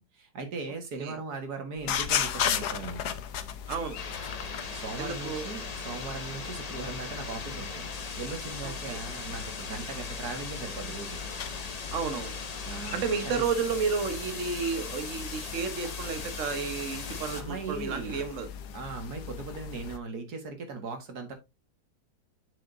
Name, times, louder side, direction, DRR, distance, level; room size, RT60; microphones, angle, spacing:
voice 1, 0.0-3.2 4.7-7.8 8.1-11.2 12.6-13.4 17.3-18.2 18.7-21.3, right 4 dB, 70° right, 2.2 m, -39 dB
sound 1, 1.8-20.0, left 8 dB, 75° left, 1.3 m, -37 dB
voice 2, 3.7-4.0 5.0-5.5 8.6-9.0 11.9-12.4 12.9-18.5, right 5 dB, 50° right, 1.4 m, -32 dB
sound 2, 3.9-17.4, left 4 dB, 35° left, 0.7 m, -39 dB
8.0 x 6.3 x 2.6 m
omnidirectional pair, 1.7 m